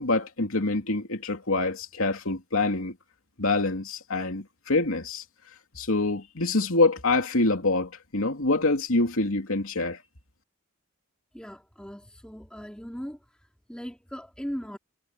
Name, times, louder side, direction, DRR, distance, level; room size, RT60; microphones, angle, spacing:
voice 1, 0.0-2.9 3.4-5.2 5.7-10.0, left 2 dB, 80° left, 2.7 m, -25 dB
voice 2, 11.3-13.2 13.7-14.8, equal, 5° left, 3.8 m, -38 dB
head